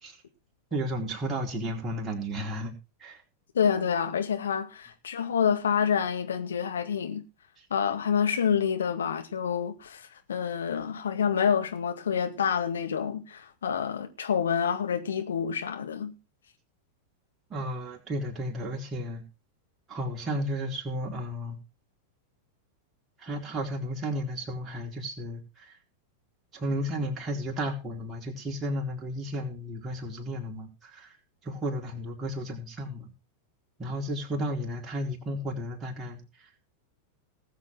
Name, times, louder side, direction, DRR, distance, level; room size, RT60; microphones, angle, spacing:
voice 1, 0.7-2.7 3.0-3.2 7.6-7.7 17.5-19.2 19.9-21.6 23.2-25.8 26.5-31.2 31.4-33.1 33.8-36.5, equal, 20° right, 4.3 m, -33 dB
voice 2, 3.5-7.2 7.7-16.1, left 7 dB, 65° left, 2.0 m, -28 dB
19.0 x 7.4 x 4.8 m
figure-of-eight pair, 90°, 0 cm